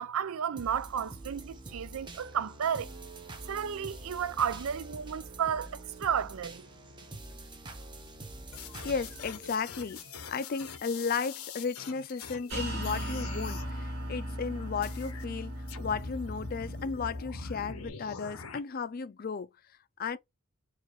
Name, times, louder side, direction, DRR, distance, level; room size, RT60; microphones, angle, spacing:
voice 1, 0.0-2.9 3.5-6.6, right 8 dB, 80° right, 0.4 m, -32 dB
sound 1, 0.6-10.6 11.1-11.2, right 2 dB, 20° right, 0.7 m, -46 dB
sound 2, 8.5-12.5 12.8-13.7 14.8-15.2 15.7-18.6, left 5 dB, 85° left, 0.8 m, -44 dB
voice 2, 8.8-10.0 10.3-15.5 15.8-19.5 20.0-20.2, left 5 dB, 45° left, 0.4 m, -34 dB
sound 3, 12.5-17.9, equal, 55° right, 1.5 m, -38 dB
4.5 x 2.5 x 3.1 m
head